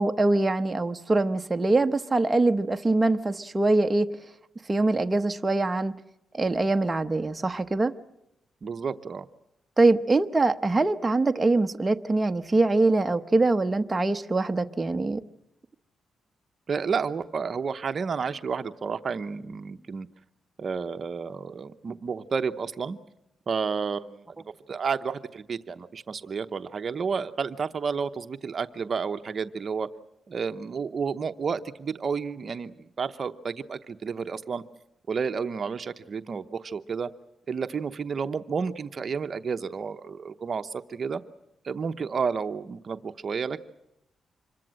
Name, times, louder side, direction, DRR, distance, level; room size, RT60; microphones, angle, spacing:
voice 1, 0.0-4.1 4.7-6.0 6.3-7.9 9.8-15.2, right 2 dB, 20° right, 6 dB, 0.9 m, -23 dB
voice 2, 8.6-9.2 16.7-20.1 20.6-23.0 23.5-29.9 30.3-34.6 35.1-37.1 37.5-41.2 41.6-43.6, right 5 dB, 45° right, 9 dB, 0.8 m, -31 dB
26.5 x 22.0 x 7.6 m, 0.84 s
cardioid pair, 110°, 0 cm